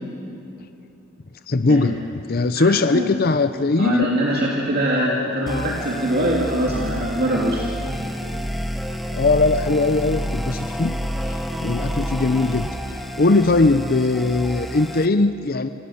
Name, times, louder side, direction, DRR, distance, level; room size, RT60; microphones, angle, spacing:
voice 1, 1.5-4.1 4.9-5.8 9.1-11.0 11.2-12.7 13.2-15.7, left 3 dB, 50° left, 10 dB, 0.7 m, -20 dB
voice 2, 2.6-3.1 3.8-7.7, right 1 dB, 50° right, -3 dB, 2.6 m, -23 dB
Wind instrument woodwind instrument, 4.1-9.5, right 1 dB, 65° right, 5.1 m, -44 dB
sound 1, 5.5-15.1, equal, ahead, 1.2 m, -29 dB
28.5 x 27.0 x 7.2 m, 2.9 s
head